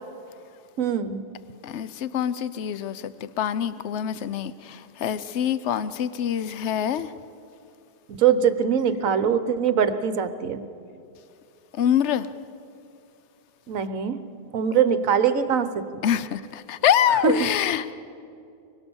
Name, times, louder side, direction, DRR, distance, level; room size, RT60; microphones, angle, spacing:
voice 1, 0.8-1.2 8.1-10.6 13.7-14.2 14.5-15.7 17.1-17.5, right 7 dB, 50° right, 11 dB, 1.2 m, -22 dB
voice 2, 1.6-4.5 5.0-7.1 11.8-12.3 16.0-17.9, left 9 dB, 70° left, 14 dB, 0.6 m, -25 dB
25.0 x 21.5 x 7.2 m, 2.6 s
omnidirectional pair, 2.0 m